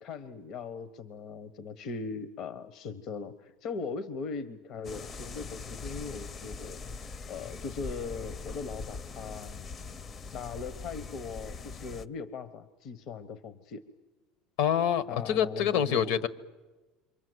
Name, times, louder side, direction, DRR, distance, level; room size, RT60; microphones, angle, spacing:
voice 1, 0.0-9.6 10.3-13.8 15.1-16.1, left 5 dB, 60° left, 13 dB, 1.1 m, -39 dB
sound 1, 4.8-12.1, left 4 dB, 35° left, 0.8 m, -42 dB
voice 2, 14.6-16.3, left 9 dB, 75° left, 15 dB, 1.4 m, -26 dB
27.5 x 24.5 x 8.0 m, 1.2 s
supercardioid pair, 95°, 0 cm